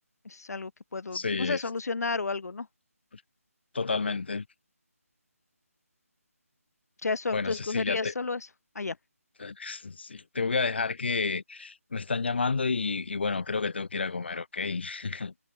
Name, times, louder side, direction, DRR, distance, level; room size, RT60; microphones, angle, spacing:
voice 1, 0.2-2.7 7.0-8.5 8.8-9.0, left 4 dB, 90° left, 0.5 m, -32 dB
voice 2, 1.1-1.6 3.1-3.2 3.7-4.4 7.3-8.1 9.4-15.3, left 4 dB, 45° left, 0.6 m, -30 dB
figure-of-eight pair, 175°, 8 cm